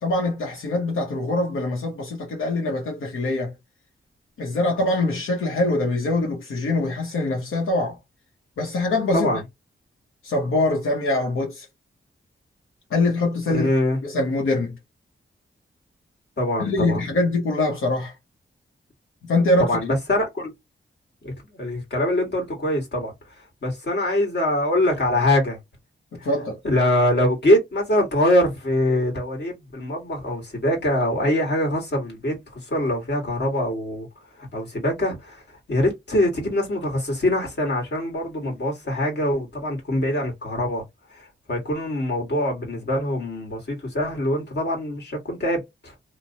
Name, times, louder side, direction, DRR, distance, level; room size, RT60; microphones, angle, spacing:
voice 1, 0.0-3.5 4.4-8.0 8.6-9.3 10.2-11.7 12.9-13.7 14.0-14.7 16.6-18.1 19.2-19.8 26.2-26.6, left 2 dB, 85° left, 0.8 m, -23 dB
voice 2, 13.5-14.0 16.4-17.0 19.6-20.5 21.2-23.1 23.6-25.6 26.2-26.3 26.6-34.1 34.4-40.8 41.1-45.9, left 1 dB, 55° left, 1.6 m, -23 dB
2.9 x 2.0 x 2.6 m
cardioid pair, 70°, 21 cm